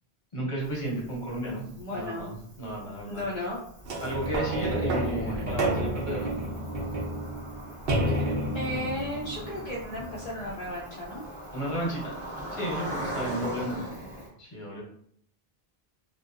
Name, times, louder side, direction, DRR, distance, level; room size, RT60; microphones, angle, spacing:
voice 1, 0.3-1.6 1.9-3.2 4.0-6.3 11.5-12.2 12.5-13.8 14.4-14.8, right 1 dB, 35° left, -4 dB, 0.9 m, -33 dB
Cricket, 0.6-14.3, right 1 dB, 35° right, 0.7 m, -42 dB
voice 2, 1.8-2.4 3.1-3.6 5.2-5.4 8.2-11.2 13.6-13.9, left 1 dB, 55° left, -5 dB, 0.5 m, -35 dB
sound 1, 3.8-10.6 11.2-11.3, right 1 dB, 70° right, 0.8 m, -30 dB
2.7 x 2.1 x 2.4 m, 0.64 s
omnidirectional pair, 1.0 m